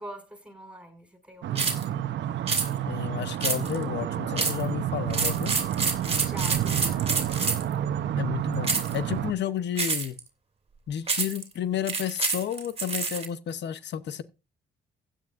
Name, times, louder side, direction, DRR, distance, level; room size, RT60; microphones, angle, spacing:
voice 1, 0.0-1.8 6.2-7.1, right 1 dB, 5° right, 6.1 m, -43 dB
sound 1, 1.4-9.3, right 11 dB, 75° right, 0.9 m, -30 dB
sound 2, 1.6-1.8 2.5-2.7 3.4-3.8 4.4-4.6 5.1-7.7 8.6-9.0 9.8-10.2 11.1-11.4 11.9-13.3, right 4 dB, 30° right, 2.8 m, -28 dB
voice 2, 2.9-5.5 8.2-10.2 10.9-14.2, left 9 dB, 65° left, 0.9 m, -31 dB
15.5 x 10.0 x 2.6 m
cardioid pair, 75°, 19 cm